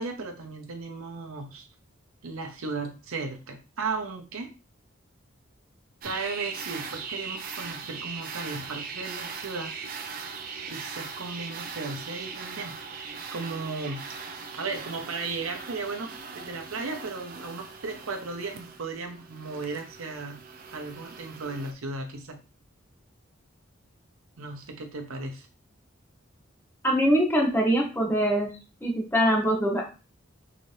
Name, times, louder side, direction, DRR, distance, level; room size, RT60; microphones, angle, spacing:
voice 1, 0.0-1.7 2.2-4.5 6.0-9.7 10.7-13.0 13.3-14.1 14.6-20.4 20.7-22.4 24.4-25.5, right 3 dB, 80° right, 4 dB, 0.7 m, -35 dB
sound 1, 6.0-21.7, right 5 dB, 40° right, 0.5 m, -39 dB
voice 2, 26.8-28.5 28.8-29.8, equal, 10° left, 0 dB, 0.7 m, -23 dB
3.8 x 2.8 x 3.2 m, 0.33 s
head